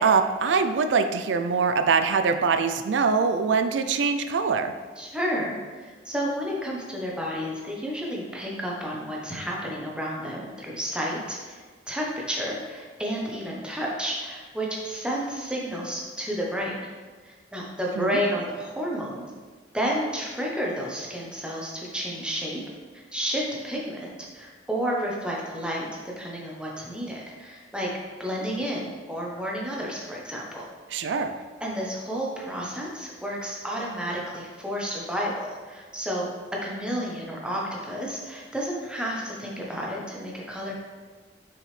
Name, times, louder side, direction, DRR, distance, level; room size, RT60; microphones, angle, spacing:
voice 1, 0.0-4.7 18.0-18.2 30.9-31.3, right 5 dB, 85° right, 8 dB, 0.4 m, -23 dB
voice 2, 5.0-11.6 11.9-16.7 17.2-19.3 19.7-22.6 23.1-27.9 28.2-30.6 31.6-36.3 36.6-40.7, equal, 5° right, -3 dB, 0.9 m, -31 dB
6.1 x 4.8 x 3.2 m, 1.4 s
head